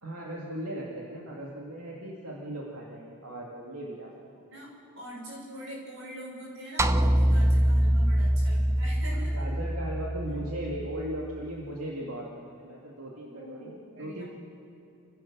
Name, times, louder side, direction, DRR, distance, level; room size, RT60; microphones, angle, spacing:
voice 1, 0.0-4.1 9.3-14.2, right 1 dB, 80° right, -3 dB, 2.6 m, -38 dB
voice 2, 4.5-9.3 10.3-10.4 13.2-14.2, right 1 dB, 55° right, -3 dB, 6.5 m, -43 dB
sound 1, 6.8-11.2, equal, 10° right, 0.5 m, -24 dB
30.0 x 16.0 x 6.3 m, 2.9 s
head